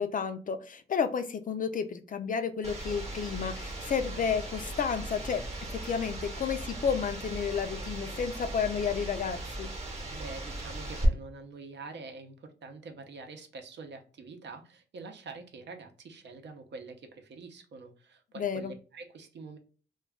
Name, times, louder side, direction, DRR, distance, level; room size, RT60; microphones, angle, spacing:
voice 1, 0.0-5.4 5.7-9.7 18.4-18.7, left 6 dB, 45° left, 9 dB, 0.4 m, -31 dB
sound 1, 2.6-11.1, right 1 dB, 30° right, 0.9 m, -38 dB
voice 2, 10.1-19.6, right 3 dB, 65° right, 5 dB, 0.7 m, -46 dB
2.3 x 2.2 x 3.4 m, 0.39 s
cardioid pair, 100°, 20 cm